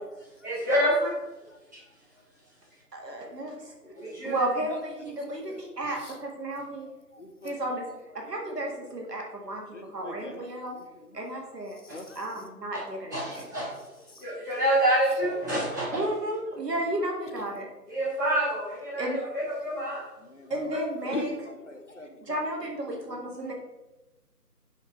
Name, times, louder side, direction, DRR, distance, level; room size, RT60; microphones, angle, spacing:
voice 1, 0.4-1.1 4.0-4.3 11.9-12.0 13.1-13.8 14.2-16.0 17.9-20.0 20.7-20.8, right 1 dB, 10° right, -12 dB, 1.7 m, -27 dB
voice 2, 2.9-3.6 4.2-6.9 7.4-7.9 8.1-9.6 9.9-10.8 11.1-11.8 12.2-13.5 15.9-17.7 19.0-19.2 20.5-21.3 22.2-23.5, right 1 dB, 80° right, 0 dB, 2.0 m, -33 dB
voice 3, 3.8-4.2 5.5-5.6 7.1-7.5 9.7-10.4 11.9-12.5 20.4-20.6 21.0-22.4 23.0-23.2, left 2 dB, 50° left, 5 dB, 0.7 m, -40 dB
5.1 x 5.1 x 4.5 m, 1.1 s
figure-of-eight pair, 170°, 48 cm